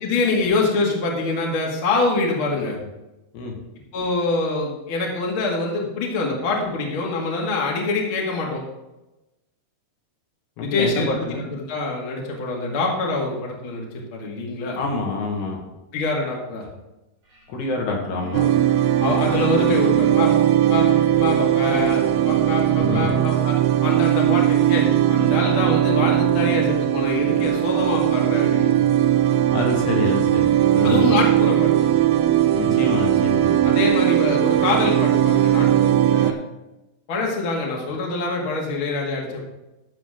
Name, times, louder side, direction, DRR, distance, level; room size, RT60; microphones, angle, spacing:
voice 1, 0.0-2.8 3.9-8.6 10.6-14.8 15.9-16.7 19.0-20.3 20.7-20.9 21.2-23.6 23.8-28.8 30.8-31.9 33.6-36.4 37.1-39.4, left 3 dB, 40° left, -2 dB, 2.4 m, -25 dB
voice 2, 10.6-11.4 14.8-15.6 17.5-18.5 22.8-23.2 29.5-30.5 30.7-31.2 32.5-33.7, left 3 dB, 80° left, -1 dB, 4.0 m, -26 dB
sound 1, 17.3-17.5 17.8-24.4, left 1 dB, 45° right, 4.6 m, -41 dB
sound 2, 18.3-36.3, right 11 dB, 90° right, 2.7 m, -19 dB
13.5 x 7.7 x 3.8 m, 0.98 s
omnidirectional pair, 4.7 m